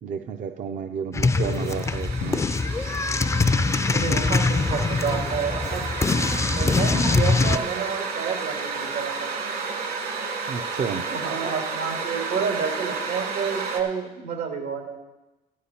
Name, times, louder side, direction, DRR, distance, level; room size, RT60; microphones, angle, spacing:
voice 1, 0.0-2.4 10.5-11.1, right 6 dB, 50° right, 6 dB, 0.6 m, -31 dB
sound 1, 1.1-7.6, left 3 dB, 15° left, 0.5 m, -23 dB
voice 2, 1.2-1.7 3.9-5.8 6.5-9.3 11.1-15.0, right 6 dB, 85° right, 2 dB, 2.6 m, -30 dB
sound 2, 1.3-13.8, right 4 dB, 70° right, 2.7 m, -32 dB
Drum, 2.2-4.2, left 7 dB, 90° left, 0.9 m, -40 dB
13.5 x 11.5 x 4.3 m, 1.0 s
cardioid pair, 110°, 17 cm